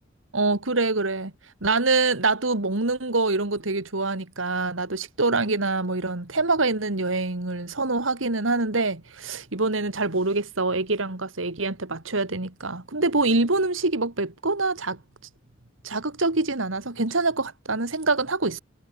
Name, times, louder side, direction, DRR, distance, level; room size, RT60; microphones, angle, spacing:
voice 1, 0.3-1.3 1.6-15.0 15.8-18.6, right 3 dB, 90° right, 2.3 m, -25 dB
head